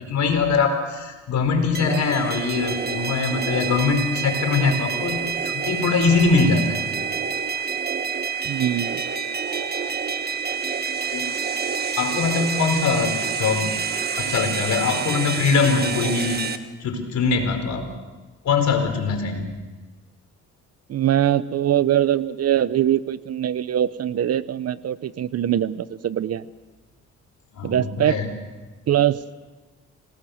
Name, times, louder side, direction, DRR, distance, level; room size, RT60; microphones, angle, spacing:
voice 1, 0.0-7.0 11.1-11.3 12.0-16.4 16.8-17.9 18.4-19.5 27.5-28.3, left 4 dB, 65° left, 5 dB, 4.6 m, -22 dB
sound 1, 1.7-16.6, right 6 dB, 30° right, 1.6 m, -27 dB
voice 2, 8.4-9.0 20.9-26.4 27.6-28.2 28.9-29.2, right 11 dB, 55° right, 16 dB, 0.9 m, -22 dB
27.0 x 18.5 x 6.5 m, 1.2 s
cardioid pair, 90°, 30 cm